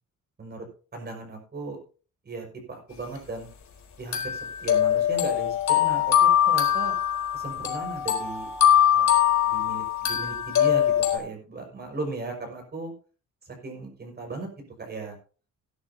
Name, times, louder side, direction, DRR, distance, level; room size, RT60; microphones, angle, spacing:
voice 1, 0.9-1.8 2.2-3.5 4.0-7.0 7.3-8.5 8.9-9.1 9.4-12.9 13.5-14.5 14.8-15.2, right 3 dB, 30° right, 2 dB, 5.8 m, -37 dB
sound 1, 3.2-3.3 4.1-11.2, left 10 dB, 60° left, 4.3 m, -22 dB
17.0 x 11.5 x 2.8 m, 0.37 s
cardioid pair, 150°, 32 cm